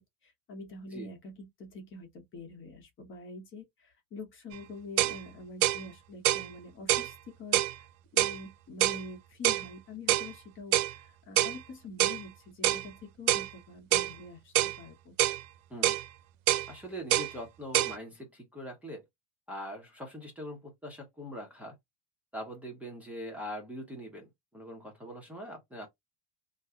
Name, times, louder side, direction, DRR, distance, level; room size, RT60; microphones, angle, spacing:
voice 1, 0.0-7.9 8.1-15.1, left 2 dB, 30° left, 1.0 m, -46 dB
sound 1, 4.5-4.6 5.0-5.2 5.6-5.8 6.2-6.5 6.9-7.1 7.5-7.7 8.2-8.4 8.8-9.0 9.4-9.7 10.1-10.3 10.7-10.9 11.4-11.6 12.0-12.2 12.6-12.8 13.3-13.5 13.9-14.1 14.6-14.8 15.2-15.4 15.8-16.0 16.5-16.7 17.1-17.3 17.7-18.0, right 15 dB, 75° right, 0.6 m, -26 dB
voice 2, 16.7-19.0 19.5-21.7 22.3-25.9, equal, 5° right, 0.8 m, -42 dB
2.6 x 2.3 x 3.5 m
supercardioid pair, 135°, 38 cm